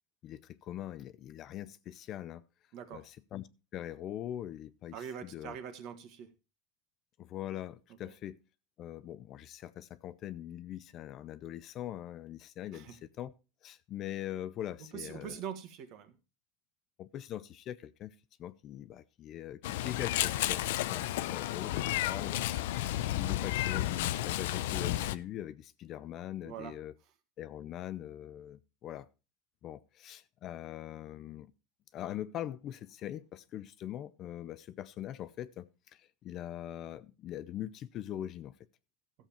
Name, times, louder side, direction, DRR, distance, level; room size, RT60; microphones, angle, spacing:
voice 1, 0.2-2.4 2.9-3.4 3.7-5.6 7.2-8.4 8.8-13.3 13.6-15.4 17.0-18.1 18.4-26.9 27.4-29.1 29.6-31.5 31.9-38.5, left 12 dB, 35° left, 0.5 m, -42 dB
voice 2, 2.7-3.0 4.9-6.3 12.7-12.9 14.9-16.1 26.4-26.7, right 8 dB, 45° right, 1.7 m, -43 dB
Meow, 19.6-25.2, left 14 dB, 80° left, 0.6 m, -32 dB
13.5 x 7.4 x 4.4 m
supercardioid pair, 155°, 0 cm